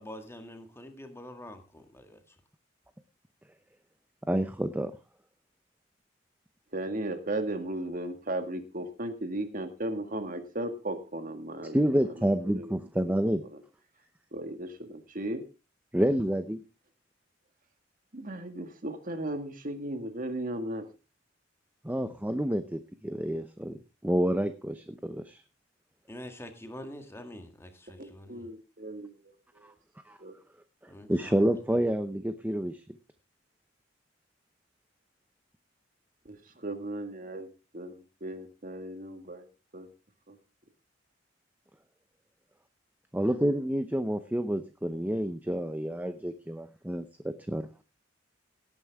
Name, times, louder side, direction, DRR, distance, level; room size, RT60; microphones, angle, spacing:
voice 1, 0.0-2.4 26.1-28.5 30.9-31.8, left 1 dB, 15° left, 6 dB, 1.8 m, -46 dB
voice 2, 4.3-4.9 11.7-13.4 15.9-16.6 21.8-25.4 30.1-30.2 31.1-32.8 43.1-47.6, right 1 dB, 10° right, 9 dB, 0.7 m, -28 dB
voice 3, 6.7-12.7 13.4-13.6 14.3-15.4 18.1-20.8 28.0-29.7 30.2-30.3 36.3-37.5 37.7-39.5 39.7-39.9 40.3-40.4, right 1 dB, 45° right, 7 dB, 1.9 m, -36 dB
17.5 x 9.4 x 3.6 m, 0.30 s
head